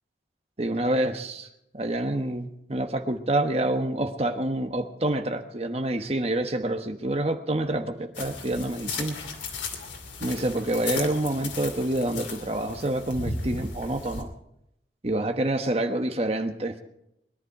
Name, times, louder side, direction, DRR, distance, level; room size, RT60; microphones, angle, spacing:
voice 1, 0.6-1.5 1.7-9.2 10.2-14.3 15.0-16.8, right 1 dB, 35° right, 7 dB, 1.1 m, -27 dB
sound 1, 8.1-14.2, left 4 dB, 90° left, 2.5 m, -36 dB
22.0 x 11.0 x 4.9 m, 0.81 s
head